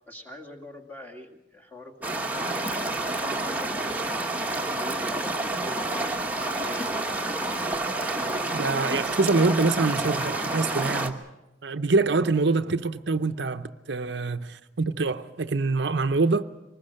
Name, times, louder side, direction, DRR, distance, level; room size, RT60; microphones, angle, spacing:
voice 1, 0.1-6.2 6.6-7.0, left 1 dB, 10° left, 2.1 m, -43 dB
sound 1, 2.0-11.1, right 2 dB, 10° right, 1.3 m, -29 dB
Telephone, 5.7-5.9 6.4-6.7 7.1-7.4 7.8-8.1 8.5-8.8 9.3-9.5 10.0-10.2 10.7-11.0, left 1 dB, 75° left, 3.8 m, -45 dB
voice 2, 8.5-11.2 11.6-16.4, right 3 dB, 65° right, 0.7 m, -25 dB
24.5 x 20.0 x 6.5 m
head